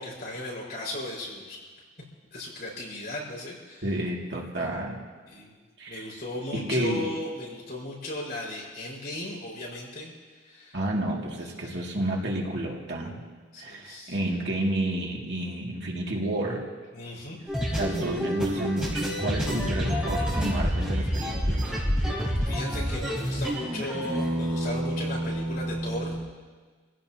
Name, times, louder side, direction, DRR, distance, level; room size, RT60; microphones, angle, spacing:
voice 1, 0.0-1.6 2.3-3.9 5.3-5.6 5.9-10.1 10.4-10.8 11.2-11.3 11.6-11.7 13.5-14.2 16.9-17.4 22.5-26.1, left 1 dB, 50° left, -4 dB, 5.3 m, -36 dB
voice 2, 3.8-5.0 5.8-6.0 6.5-7.1 10.7-13.2 13.6-16.7 17.8-21.7, right 1 dB, 60° right, -2 dB, 2.4 m, -30 dB
sound 1, 17.5-26.3, equal, 5° right, 4.8 m, -28 dB
27.0 x 16.0 x 2.9 m, 1.4 s
head